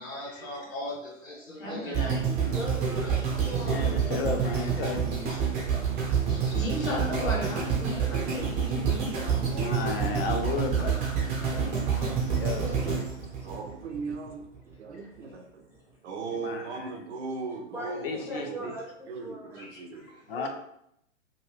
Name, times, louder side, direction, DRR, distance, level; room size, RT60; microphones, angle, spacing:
voice 1, 0.0-2.2 3.0-3.8 4.6-4.7 5.3-5.5 6.1-9.7 19.5-20.5, left 1 dB, 80° left, -3 dB, 1.5 m, -37 dB
voice 2, 1.6-2.5 6.9-7.8 8.1-8.4 11.4-11.5 13.4-14.4 14.8-15.6 16.0-18.7 19.1-20.0, right 4 dB, 60° right, 3 dB, 0.7 m, -39 dB
sound 1, 1.9-14.1 14.7-14.8, right 7 dB, 20° right, 1.0 m, -28 dB
voice 3, 2.5-4.3 7.1-7.4 12.6-13.5 15.7-15.8 17.7-19.6 20.3-20.5, right 1 dB, 5° right, -6 dB, 0.5 m, -41 dB
voice 4, 3.7-5.4 9.6-12.9 16.4-16.6 18.0-18.7 20.3-20.5, left 4 dB, 45° left, 4 dB, 0.6 m, -34 dB
2.8 x 2.7 x 3.2 m, 0.77 s
hypercardioid pair, 120°, 39 cm